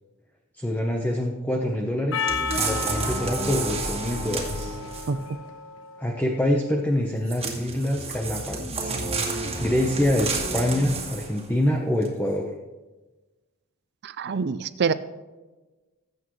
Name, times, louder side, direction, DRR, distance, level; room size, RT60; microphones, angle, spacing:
voice 1, 0.6-2.3 2.6-4.8 6.0-9.0 9.6-12.5, left 1 dB, 10° left, 0 dB, 0.9 m, -25 dB
Percussion, 2.1-6.7, left 5 dB, 65° left, 1.2 m, -34 dB
sound 1, 2.3-5.3 7.3-11.5 12.0-12.1, right 3 dB, 30° right, 2.0 m, -30 dB
voice 2, 14.0-14.9, right 5 dB, 50° right, 14 dB, 0.5 m, -25 dB
19.5 x 8.6 x 3.2 m, 1.2 s
head